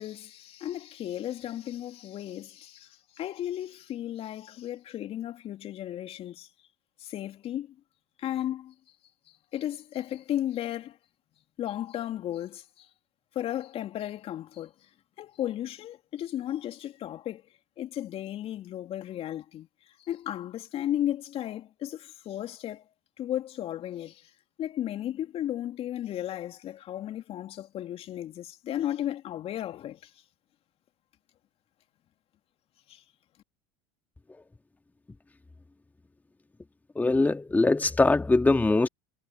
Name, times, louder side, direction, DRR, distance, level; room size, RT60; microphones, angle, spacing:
voice 1, 0.0-2.9 3.2-6.5 7.0-7.7 8.2-8.7 9.5-11.0 11.6-12.9 13.3-14.7 15.2-17.4 17.8-19.7 20.0-22.8 23.2-24.2 24.6-30.0 32.9-33.0, left 12 dB, 45° left, 3.0 m, -34 dB
voice 2, 37.0-38.9, left 3 dB, 10° left, 2.1 m, -22 dB
hypercardioid pair, 80°, 14 cm